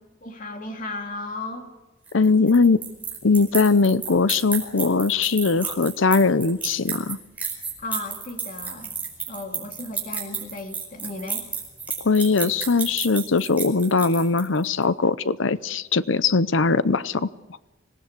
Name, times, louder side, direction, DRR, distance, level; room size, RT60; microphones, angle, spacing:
voice 1, 0.2-1.7 2.4-2.7 7.8-8.9 9.3-11.4, left 2 dB, 40° left, 3 dB, 2.7 m, -35 dB
voice 2, 2.1-2.8 3.2-7.2 12.0-17.3, left 4 dB, 70° left, 16 dB, 0.7 m, -20 dB
sound 1, 2.1-14.7, right 5 dB, 10° right, 4.9 m, -31 dB
25.5 x 18.5 x 8.2 m, 1.1 s
head